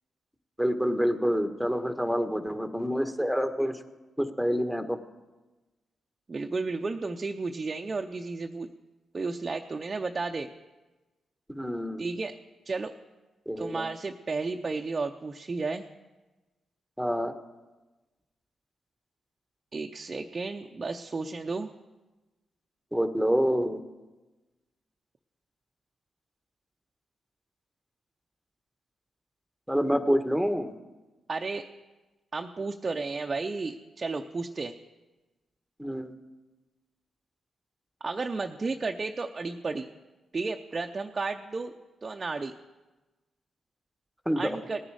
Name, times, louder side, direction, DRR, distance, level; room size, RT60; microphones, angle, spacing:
voice 1, 0.6-3.8 4.2-5.0 11.5-12.1 13.4-13.9 17.0-17.3 22.9-23.8 29.7-30.7 35.8-36.1 44.2-44.6, equal, ahead, 7 dB, 1.4 m, -27 dB
voice 2, 6.3-8.7 9.1-10.5 12.0-12.4 12.6-12.9 13.6-15.9 19.7-21.7 31.3-31.7 32.3-34.7 38.0-39.9 40.3-41.7 42.0-42.5 44.4-44.8, right 3 dB, 40° right, 4 dB, 0.7 m, -33 dB
18.0 x 9.9 x 4.9 m, 1.2 s
supercardioid pair, 45°, 0 cm